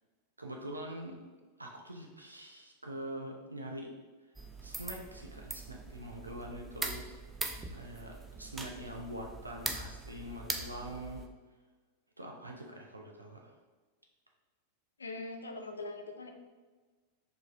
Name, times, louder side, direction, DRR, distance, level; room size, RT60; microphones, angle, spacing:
voice 1, 0.4-1.2 1.6-3.9 4.6-7.0 7.7-11.3 12.2-13.5, right 1 dB, 80° right, 1 dB, 0.4 m, -44 dB
sound 1, 4.4-11.3, right 3 dB, 15° right, 0.4 m, -42 dB
voice 2, 15.0-16.3, left 2 dB, 75° left, 4 dB, 0.4 m, -42 dB
4.6 x 2.4 x 3.2 m, 1.3 s
figure-of-eight pair, 90°, 0 cm